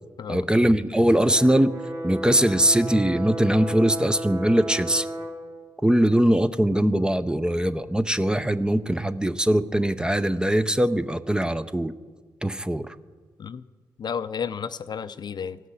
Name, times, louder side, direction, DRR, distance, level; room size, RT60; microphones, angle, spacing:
voice 1, 0.3-1.7 2.0-5.1 5.8-12.0 12.4-13.0, right 1 dB, 10° right, 12 dB, 0.6 m, -21 dB
Brass instrument, 1.2-5.4, right 1 dB, 45° right, 3.7 m, -33 dB
voice 2, 2.5-2.9 13.4-13.6 14.0-15.6, left 7 dB, 50° left, 13 dB, 0.5 m, -33 dB
16.0 x 6.0 x 8.2 m, 1.5 s
supercardioid pair, 50°, 9 cm